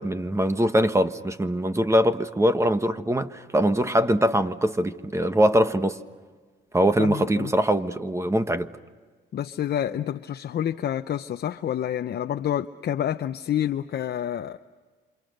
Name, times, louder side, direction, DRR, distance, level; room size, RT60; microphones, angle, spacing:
voice 1, 0.0-6.0 6.7-8.7, equal, 15° right, 1.3 m, -22 dB
voice 2, 7.0-7.5 9.3-14.6, left 10 dB, 55° left, 0.7 m, -28 dB
28.0 x 27.0 x 6.6 m
cardioid pair, 90°, 20 cm